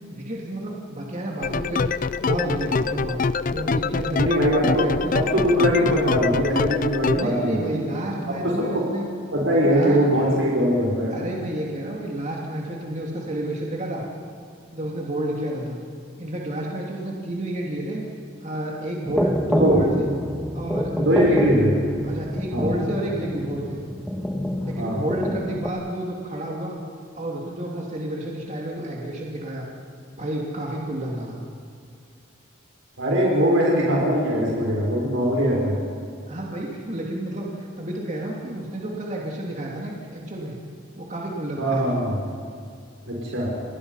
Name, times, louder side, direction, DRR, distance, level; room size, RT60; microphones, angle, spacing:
voice 1, 0.1-1.8 2.2-3.2 3.5-5.2 7.1-9.1 9.6-10.0 11.1-14.1 14.7-15.8 16.2-18.0 18.4-20.1 20.5-21.4 22.0-23.8 24.6-26.8 27.1-29.7 30.2-31.5 36.3-40.6 41.0-42.1, right 1 dB, 35° right, -2 dB, 2.8 m, -30 dB
sound 1, 1.4-7.2, left 4 dB, 40° left, 0.5 m, -25 dB
voice 2, 4.1-4.9 5.1-7.8 8.3-8.8 9.3-11.1 19.5-19.8 21.0-21.7 22.5-22.7 24.8-25.0 33.0-35.8 41.6-42.2 43.1-43.5, equal, 70° right, -3 dB, 5.6 m, -21 dB
sound 2, 19.1-25.7, equal, ahead, 1.5 m, -27 dB
28.5 x 20.5 x 5.7 m, 2.3 s
head